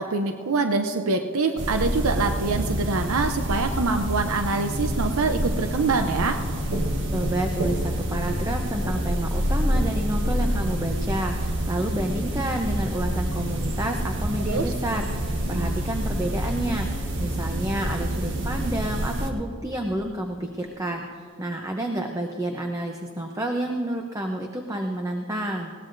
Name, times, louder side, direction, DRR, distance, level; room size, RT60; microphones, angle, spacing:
voice 1, 0.0-6.4 14.5-14.7 15.5-15.7, right 3 dB, 80° right, 6 dB, 0.7 m, -25 dB
sound 1, 1.6-19.3, right 1 dB, 55° right, 1.4 m, -27 dB
voice 2, 7.1-25.7, right 1 dB, 15° right, 3 dB, 0.7 m, -30 dB
20.5 x 18.0 x 2.6 m, 2.1 s
head